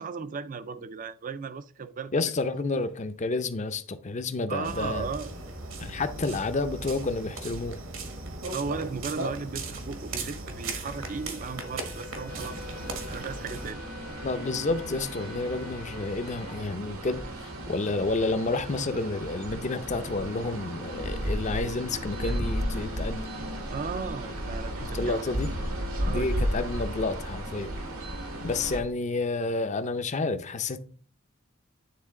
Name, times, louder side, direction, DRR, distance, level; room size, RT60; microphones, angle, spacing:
voice 1, 0.0-2.2 4.5-5.3 6.1-6.2 8.5-12.6 13.1-13.8 23.7-25.2 26.0-26.5, right 5 dB, 40° right, 0.4 m, -36 dB
voice 2, 2.1-5.1 5.8-7.8 14.2-23.3 24.9-25.5 26.1-27.7 28.4-30.8, left 3 dB, 35° left, 0.5 m, -30 dB
sound 1, 4.6-13.7, right 2 dB, 70° right, 1.3 m, -37 dB
Wind instrument woodwind instrument, 10.9-16.6, left 4 dB, 90° left, 1.0 m, -48 dB
sound 2, 12.3-28.8, equal, 85° right, 1.6 m, -34 dB
9.4 x 3.8 x 3.7 m
head